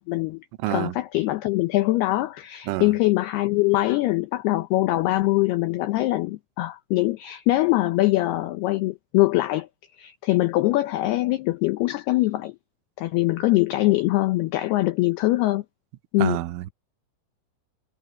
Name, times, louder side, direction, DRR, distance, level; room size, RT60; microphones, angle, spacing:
voice 1, 0.0-0.4 0.7-9.7 10.0-12.5 13.0-15.6 16.1-16.4, left 18 dB, 85° left, 2.3 m, -23 dB
voice 2, 0.6-0.9 2.7-2.9 16.2-16.7, right 17 dB, 80° right, 3.2 m, -27 dB
omnidirectional pair, 5.6 m